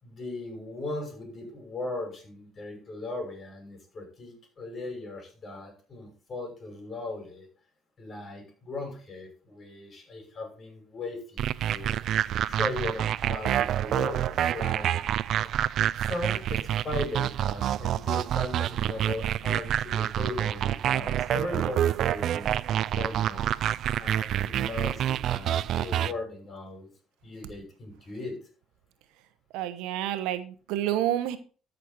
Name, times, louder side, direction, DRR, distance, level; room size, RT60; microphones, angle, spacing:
voice 1, 0.0-7.5 8.0-12.0 12.4-14.9 15.9-23.5 24.0-26.9 27.2-28.4, left 2 dB, 40° left, 3 dB, 5.8 m, -38 dB
sound 1, 11.4-26.1, right 11 dB, 65° right, 0.4 m, -27 dB
voice 2, 29.5-31.4, right 12 dB, 80° right, 12 dB, 1.0 m, -29 dB
13.0 x 6.7 x 4.2 m, 0.39 s
hypercardioid pair, 65°, 0 cm